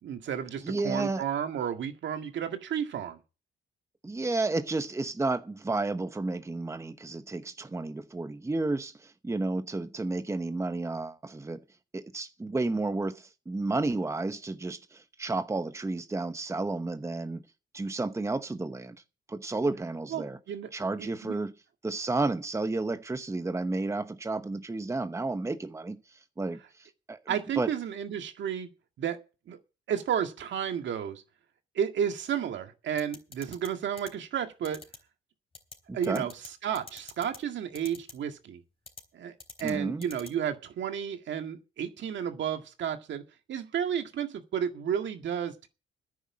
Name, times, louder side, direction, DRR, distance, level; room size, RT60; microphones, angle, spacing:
voice 1, 0.0-3.2 20.1-20.7 21.0-21.4 27.3-28.7 29.0-29.2 29.5-29.6 29.9-31.2 31.8-34.8 35.9-36.3 36.6-38.6 39.1-43.2 43.5-45.7, right 8 dB, 70° right, 2.0 m, -32 dB
voice 2, 0.6-1.2 4.0-11.6 11.9-17.4 17.7-19.0 19.3-20.4 20.7-21.5 21.8-27.7 35.9-36.3 39.6-40.0, right 2 dB, 15° right, 0.9 m, -32 dB
sound 1, 33.0-33.7 34.0-34.1 34.6-35.0 35.5-35.7 36.0-36.5 36.7-37.4 37.7-38.1 38.9-39.0 39.4-39.7 40.0-40.3, left 3 dB, 30° left, 3.7 m, -44 dB
10.0 x 9.3 x 7.4 m
cardioid pair, 90°, 20 cm